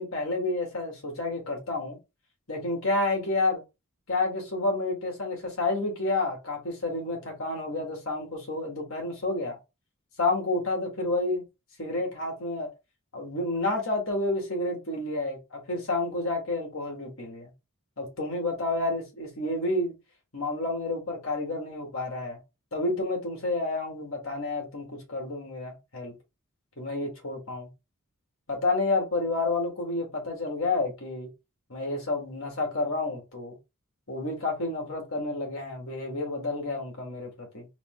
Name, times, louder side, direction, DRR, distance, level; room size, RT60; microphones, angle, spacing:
voice 1, 0.0-2.0 2.5-3.6 4.1-9.6 10.2-11.4 11.8-12.7 13.1-17.5 18.0-19.9 20.3-22.4 22.7-26.1 26.8-27.7 28.5-31.3 31.7-33.6 34.1-37.7, left 2 dB, 65° left, 1.8 m, -30 dB
4.0 x 2.2 x 3.7 m
head